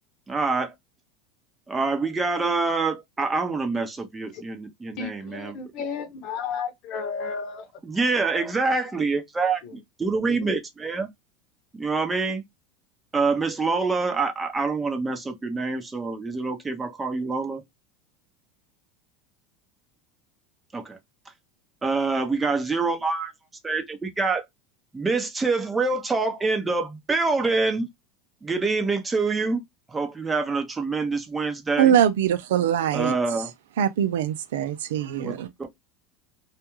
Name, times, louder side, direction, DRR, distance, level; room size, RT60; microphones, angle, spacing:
voice 1, 0.3-0.7 1.7-5.6 7.8-9.6 10.0-11.1 11.8-12.4 13.1-17.6 20.7-21.0 21.8-23.3 23.6-24.4 24.9-27.9 28.4-29.6 29.9-31.9 32.9-33.5 35.2-35.7, right 3 dB, 15° right, 0.7 m, -26 dB
voice 2, 5.0-7.7 9.6-9.8 10.3-10.5, left 6 dB, 55° left, 0.8 m, -33 dB
voice 3, 31.8-33.2 33.8-35.5, right 9 dB, 85° right, 0.4 m, -22 dB
2.3 x 2.2 x 3.0 m
supercardioid pair, 105°, 0 cm